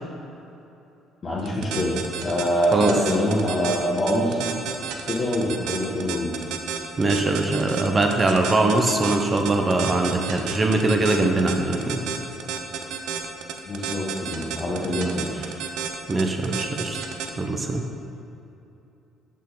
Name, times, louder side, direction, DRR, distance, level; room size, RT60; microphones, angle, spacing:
voice 1, 1.2-4.4 5.1-6.3 13.7-15.5, equal, 45° left, -8 dB, 1.3 m, -25 dB
sound 1, 1.4-17.3, right 7 dB, 80° right, 0.6 m, -31 dB
voice 2, 7.0-12.0 16.1-17.0 17.4-17.8, right 2 dB, 30° right, 3 dB, 0.8 m, -22 dB
6.5 x 6.2 x 3.9 m, 2.8 s
supercardioid pair, 80°, 0 cm